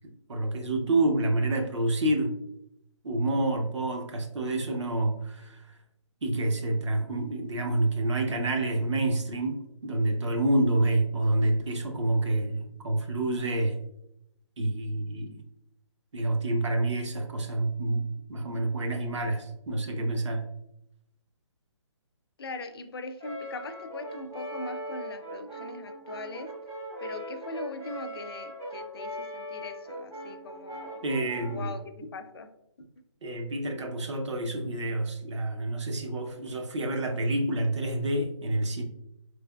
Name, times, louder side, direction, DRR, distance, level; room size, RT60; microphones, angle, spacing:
voice 1, 0.3-2.4 3.0-5.6 6.2-13.8 14.6-15.4 16.1-20.5 31.0-31.7 33.2-38.8, right 2 dB, 70° right, 4 dB, 0.8 m, -28 dB
voice 2, 22.4-26.5 27.0-31.0 31.5-32.5, left 3 dB, 50° left, 8 dB, 0.5 m, -41 dB
Brass instrument, 23.2-31.8, equal, 10° right, 0.3 m, -40 dB
4.3 x 3.3 x 2.2 m, 0.81 s
hypercardioid pair, 160°, 16 cm